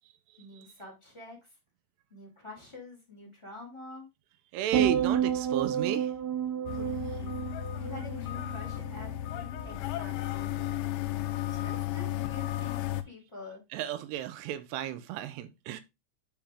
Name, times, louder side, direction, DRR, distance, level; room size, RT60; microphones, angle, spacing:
voice 1, 0.4-1.5 2.1-4.1 6.7-7.3 7.8-10.8 11.5-13.6, left 3 dB, 5° left, 2.7 m, -47 dB
voice 2, 4.5-6.1 13.7-15.8, right 11 dB, 80° right, 2.5 m, -33 dB
sound 1, 4.7-9.1 9.4-9.8, right 9 dB, 50° right, 2.2 m, -30 dB
sound 2, 6.7-13.0, left 14 dB, 80° left, 2.9 m, -34 dB
9.0 x 4.9 x 3.6 m
omnidirectional pair, 5.6 m